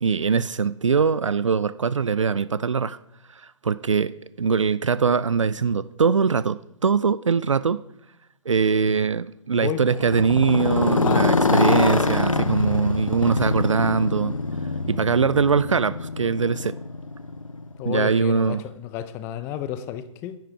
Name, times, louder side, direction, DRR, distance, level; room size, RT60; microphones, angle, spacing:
voice 1, 0.0-3.0 3.3-7.8 8.5-14.3 14.9-16.7 17.8-18.6, right 5 dB, 70° right, 0.5 m, -22 dB
Motorcycle, 9.9-17.9, left 3 dB, 85° left, 0.9 m, -24 dB
voice 2, 11.0-11.5 17.8-20.4, left 11 dB, 15° left, 0.5 m, -32 dB
10.5 x 10.5 x 4.8 m
figure-of-eight pair, 135°, 17 cm